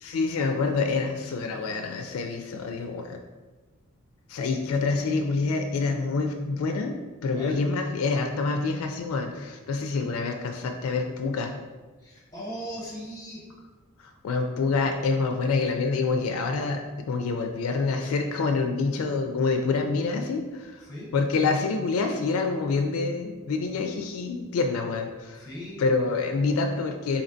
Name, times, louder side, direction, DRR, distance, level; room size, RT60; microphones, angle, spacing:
voice 1, 0.0-3.2 4.3-7.0 7.2-11.5 14.2-16.8 17.1-20.8 21.1-25.5 25.8-27.2, left 4 dB, 80° left, 5 dB, 0.3 m, -27 dB
voice 2, 7.3-7.6 12.0-13.4 20.8-21.1 25.3-25.8, equal, 20° left, -5 dB, 1.0 m, -38 dB
4.2 x 2.8 x 2.6 m, 1.3 s
head